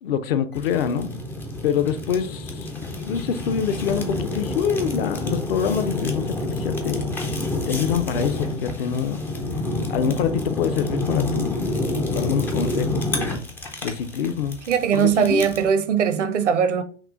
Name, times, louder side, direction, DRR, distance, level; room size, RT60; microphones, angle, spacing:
voice 1, 0.0-1.1 1.6-2.7 3.1-7.1 7.7-9.2 9.9-13.4 13.8-14.6 14.9-15.5, left 7 dB, 50° left, 0.6 m, -25 dB
Fire, 0.5-15.7, left 2 dB, 5° left, 0.4 m, -28 dB
voice 2, 14.7-16.8, right 7 dB, 70° right, 0.8 m, -20 dB
5.9 x 2.4 x 3.8 m
figure-of-eight pair, 95°, 37 cm